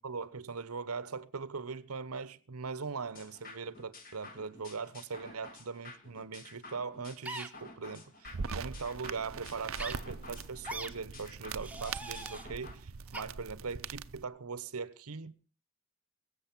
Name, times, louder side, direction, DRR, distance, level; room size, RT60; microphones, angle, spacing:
voice 1, 0.0-15.3, right 5 dB, 90° right, 0.9 m, -40 dB
sound 1, 3.1-12.7, left 3 dB, 40° left, 2.1 m, -52 dB
sound 2, 7.3-7.5 8.4-8.6 9.8-9.9 10.7-10.9 11.6-12.5 13.1-13.2, right 2 dB, 5° right, 1.1 m, -41 dB
sound 3, 8.2-14.2, right 5 dB, 65° right, 0.6 m, -42 dB
22.0 x 7.6 x 6.0 m
head